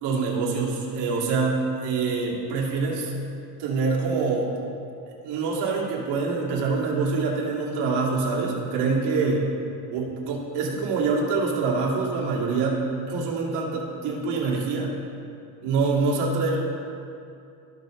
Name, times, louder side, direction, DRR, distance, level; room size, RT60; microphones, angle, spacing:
voice 1, 0.0-3.1 3.6-4.5 5.1-9.4 9.9-14.9 15.6-16.6, right 4 dB, 75° right, -3 dB, 2.3 m, -25 dB
16.5 x 6.3 x 3.2 m, 2.5 s
cardioid pair, 155°, 41 cm